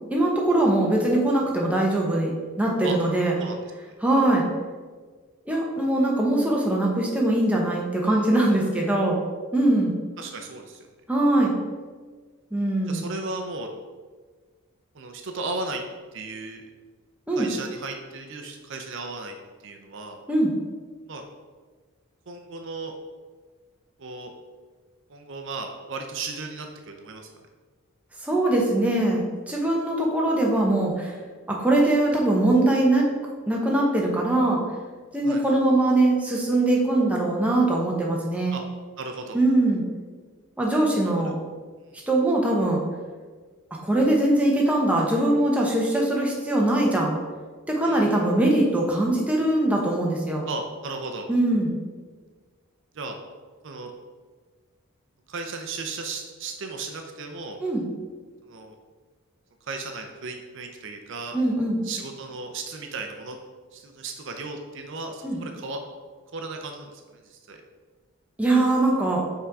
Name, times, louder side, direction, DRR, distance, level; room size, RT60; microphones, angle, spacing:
voice 1, 0.1-2.3 2.6-3.3 4.0-4.5 5.5-9.2 9.5-10.0 11.1-11.5 12.5-13.1 17.3-17.5 20.3-20.5 28.2-31.1 31.5-33.1 33.5-34.6 35.1-38.6 39.3-39.9 40.6-41.4 42.1-42.8 43.8-47.2 47.7-50.5 51.3-51.7 57.6-57.9 61.3-61.8 65.2-65.4 68.4-69.2, right 1 dB, 5° right, -2 dB, 0.9 m, -22 dB
voice 2, 10.2-10.9 12.9-13.7 14.9-15.8 16.1-16.6 17.4-19.4 19.6-20.2 21.1-21.2 22.3-22.9 24.0-24.3 25.1-27.3 35.2-35.4 38.5-38.6 39.0-39.4 41.2-41.3 41.8-41.9 47.8-48.2 50.5-51.3 52.9-53.2 53.6-53.9 55.3-57.6 58.4-58.8 59.6-61.4 61.8-63.4 63.7-65.8 66.3-67.6, right 3 dB, 55° right, 4 dB, 0.6 m, -35 dB
5.6 x 3.8 x 4.7 m, 1.4 s
head